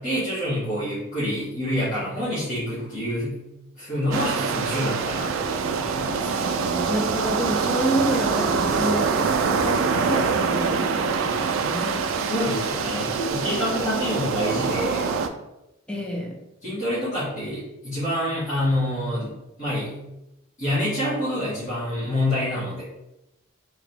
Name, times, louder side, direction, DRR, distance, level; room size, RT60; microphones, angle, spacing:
voice 1, 0.0-3.4 3.8-6.3 12.2-15.0 16.6-19.3 19.6-19.9 20.6-22.8, left 1 dB, 40° left, -12 dB, 1.5 m, -27 dB
sound 1, 4.1-15.3, right 5 dB, 80° right, 0.4 m, -25 dB
voice 2, 6.4-12.1 15.9-16.3, right 1 dB, 5° left, -2 dB, 0.7 m, -29 dB
3.5 x 2.9 x 3.4 m, 0.91 s
head